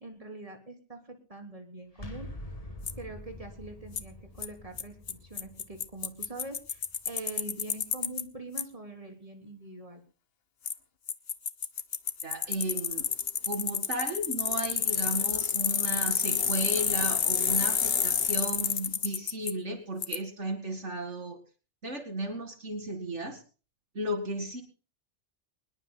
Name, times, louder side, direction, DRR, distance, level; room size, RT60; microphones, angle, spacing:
voice 1, 0.0-2.3 3.0-10.0, right 2 dB, 30° right, 4 dB, 3.4 m, -44 dB
sound 1, 1.9-7.7, left 1 dB, 30° left, 2.0 m, -46 dB
Bicycle, 2.9-3.0 4.0-4.1 4.4-4.5 4.8-4.9 5.1-5.2 5.4-8.2 8.6-8.7 10.7-10.8 11.1-19.5 20.0-20.2, left 7 dB, 55° left, 1.2 m, -29 dB
voice 2, 12.2-13.1 13.5-21.4 21.8-23.4 23.9-24.6, right 1 dB, 75° right, 7 dB, 2.4 m, -34 dB
23.5 x 20.5 x 2.2 m, 0.36 s
omnidirectional pair, 1.2 m